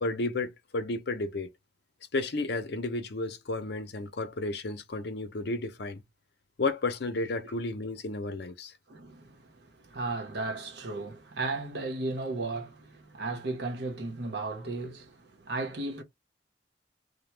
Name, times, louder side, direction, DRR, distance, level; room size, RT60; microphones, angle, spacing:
voice 1, 0.0-1.5 2.1-6.0 6.6-8.7, left 2 dB, 65° left, 0.6 m, -32 dB
voice 2, 8.9-16.0, right 3 dB, 65° right, 0.8 m, -35 dB
2.8 x 2.2 x 3.3 m
head